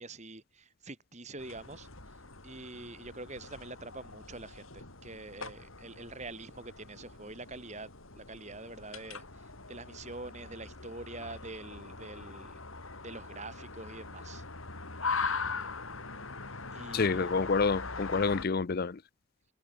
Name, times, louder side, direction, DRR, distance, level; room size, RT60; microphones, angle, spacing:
voice 1, 0.0-1.9 2.4-12.6 13.0-14.4 16.7-17.3, right 2 dB, 35° right, 3.9 m, -45 dB
sound 1, 1.4-18.5, left 4 dB, 75° left, 4.8 m, -41 dB
voice 2, 16.9-19.0, left 4 dB, 45° left, 0.5 m, -28 dB
head